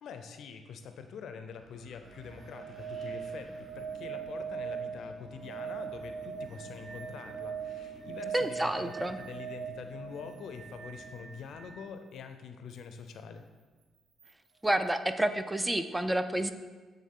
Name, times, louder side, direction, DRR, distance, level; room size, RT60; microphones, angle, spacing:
voice 1, 0.0-13.4, left 6 dB, 70° left, 7 dB, 0.5 m, -45 dB
Wind, 1.5-11.8, equal, 25° right, 2.0 m, -54 dB
sound 1, 2.1-11.9 14.2-14.3, right 7 dB, 75° right, 0.6 m, -41 dB
voice 2, 8.3-9.2 14.6-16.5, right 1 dB, 10° right, 10 dB, 0.3 m, -29 dB
8.5 x 3.6 x 3.6 m, 1.4 s
cardioid pair, 90°, 0 cm